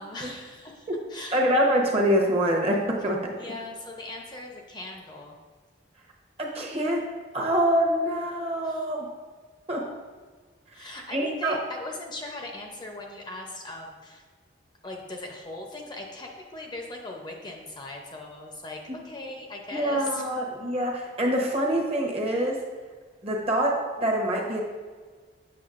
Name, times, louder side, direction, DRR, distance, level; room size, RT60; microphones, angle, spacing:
voice 1, 0.0-1.4 3.4-5.4 8.6-8.9 10.7-14.2 14.8-20.3, left 2 dB, 25° left, 1 dB, 0.6 m, -39 dB
voice 2, 1.3-3.3 6.4-7.1 7.3-9.1 9.7-9.9 10.8-11.6 18.9-19.0 19.7-22.6 23.2-24.6, equal, 35° right, -1 dB, 0.9 m, -25 dB
7.7 x 6.1 x 2.5 m, 1.5 s
head